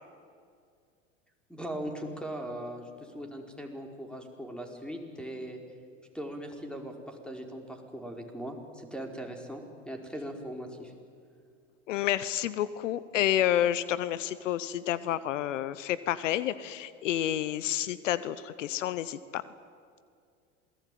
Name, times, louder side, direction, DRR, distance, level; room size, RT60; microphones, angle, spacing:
voice 1, 1.5-5.6 6.1-10.9, right 1 dB, ahead, 3 dB, 4.7 m, -39 dB
voice 2, 11.9-19.4, left 12 dB, 75° left, 16 dB, 0.9 m, -29 dB
27.5 x 19.5 x 9.3 m, 2.2 s
hypercardioid pair, 80°, 38 cm